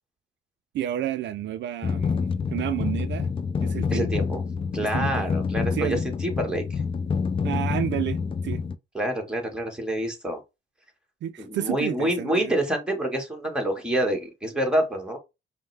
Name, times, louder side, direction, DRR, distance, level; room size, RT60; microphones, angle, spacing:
voice 1, 0.7-3.3 3.6-4.2 4.9-5.3 5.7-6.0 7.4-8.6 11.2-12.5, right 11 dB, 65° right, 0.4 m, -31 dB
sound 1, 1.8-8.8, left 5 dB, 25° left, 0.4 m, -27 dB
voice 2, 3.9-4.4 4.7-6.8 8.9-10.4 11.4-15.2, right 1 dB, 5° right, 1.5 m, -27 dB
5.4 x 2.2 x 3.3 m
cardioid pair, 90°, 20 cm